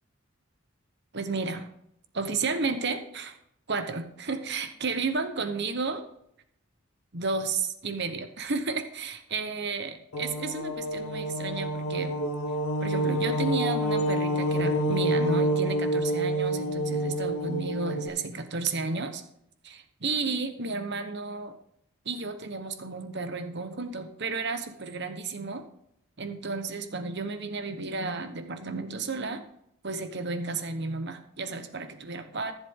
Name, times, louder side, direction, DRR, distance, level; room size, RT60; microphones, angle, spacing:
voice 1, 1.1-1.7 2.1-3.4 3.7-6.0 7.1-12.1 12.8-19.2 19.6-21.5 22.0-25.6 26.2-29.4 29.8-32.5, right 4 dB, 55° right, 8 dB, 1.1 m, -32 dB
sound 1, 10.1-18.1, right 1 dB, 90° left, 1.4 m, -28 dB
14.0 x 7.5 x 3.8 m, 0.73 s
head